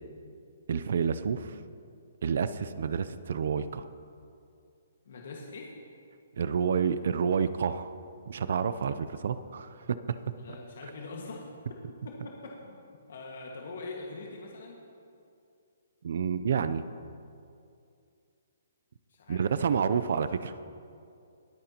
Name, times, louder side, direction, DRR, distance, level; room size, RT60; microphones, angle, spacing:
voice 1, 0.7-1.5 2.2-3.9 6.4-7.9 8.3-10.0 16.0-16.8 19.3-20.5, right 6 dB, 55° right, 13 dB, 0.5 m, -29 dB
voice 2, 5.1-5.7 10.4-11.5 12.0-12.8 13.1-14.8 19.1-19.9, left 3 dB, 60° left, -2 dB, 1.7 m, -43 dB
22.5 x 9.0 x 2.9 m, 2.5 s
hypercardioid pair, 170°, 0 cm